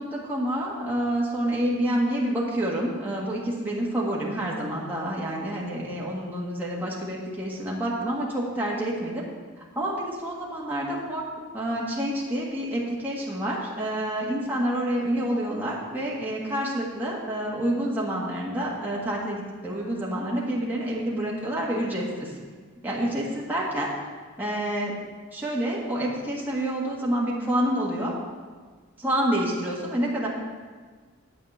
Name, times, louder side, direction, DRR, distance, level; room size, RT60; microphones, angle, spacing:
voice 1, 0.0-9.2 9.7-22.3 22.8-23.9 24.4-24.9 25.3-28.1 29.0-30.3, right 1 dB, 10° right, -6 dB, 1.6 m, -28 dB
9.7 x 5.0 x 7.8 m, 1.5 s
head